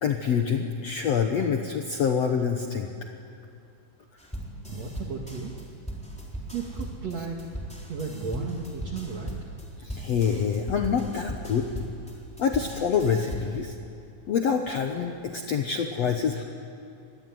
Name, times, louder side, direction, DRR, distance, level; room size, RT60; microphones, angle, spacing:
voice 1, 0.0-2.9 9.8-11.7 12.4-13.7 14.3-16.4, left 7 dB, 70° left, 4 dB, 1.5 m, -26 dB
sound 1, 4.2-13.7, right 1 dB, ahead, 3.2 m, -38 dB
voice 2, 4.6-5.5 6.5-7.5 7.9-9.4, right 4 dB, 50° right, 0 dB, 2.5 m, -34 dB
25.0 x 21.5 x 9.4 m, 2.7 s
omnidirectional pair, 4.6 m